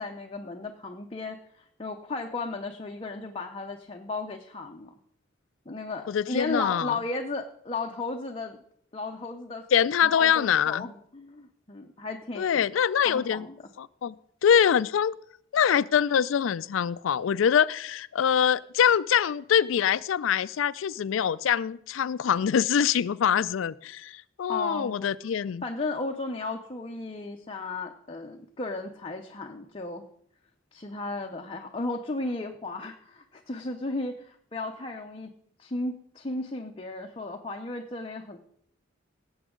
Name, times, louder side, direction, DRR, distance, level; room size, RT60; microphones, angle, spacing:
voice 1, 0.0-4.9 5.7-8.6 8.9-9.7 10.0-12.7 13.0-13.5 24.5-25.1 25.6-30.1 30.7-38.4, left 3 dB, 30° left, 3 dB, 0.7 m, -35 dB
voice 2, 6.1-7.0 9.7-10.9 12.4-13.4 13.8-14.1 14.4-15.1 15.5-25.6, left 8 dB, 80° left, 17 dB, 0.4 m, -24 dB
17.5 x 8.0 x 3.8 m, 0.66 s
head